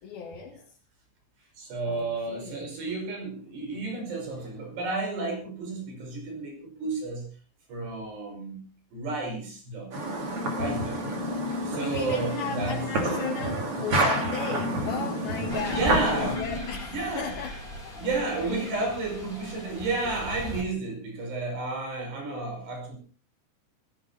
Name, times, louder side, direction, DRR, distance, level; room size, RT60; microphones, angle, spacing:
voice 1, 0.0-0.6 1.9-2.7 11.7-17.6 18.0-18.9, left 6 dB, 65° left, -1 dB, 4.1 m, -36 dB
voice 2, 1.6-7.3 7.7-8.6 8.9-9.9 10.6-11.0 11.7-12.8 15.7-16.4 16.9-17.3 18.0-23.0, right 3 dB, 80° right, 2 dB, 7.8 m, -31 dB
sound 1, 9.9-16.4, right 2 dB, 35° right, 3.6 m, -30 dB
sound 2, 10.1-16.7, left 4 dB, 35° left, 2.3 m, -35 dB
sound 3, 15.5-20.6, equal, 10° left, 4.5 m, -38 dB
18.0 x 15.5 x 4.2 m, 0.38 s
omnidirectional pair, 4.7 m